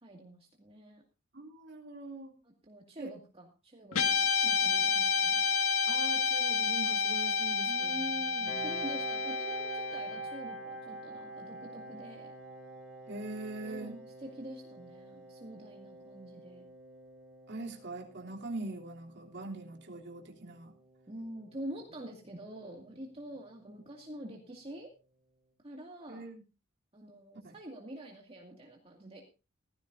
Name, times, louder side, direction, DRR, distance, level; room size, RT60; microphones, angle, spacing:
voice 1, 0.0-1.0 2.4-5.5 7.6-12.3 13.6-16.7 21.1-24.9 25.6-26.3 26.9-29.2, right 1 dB, 30° right, 0 dB, 2.2 m, -46 dB
voice 2, 1.3-2.3 3.0-3.1 5.9-8.8 13.1-13.9 17.5-20.7 26.1-26.4 27.4-27.5, right 2 dB, 55° right, 0 dB, 3.2 m, -43 dB
Guitar, 3.9-12.4, left 5 dB, 90° left, 1.9 m, -31 dB
Piano, 8.5-23.8, right 2 dB, 5° right, 4.5 m, -50 dB
17.0 x 15.5 x 2.7 m, 0.31 s
head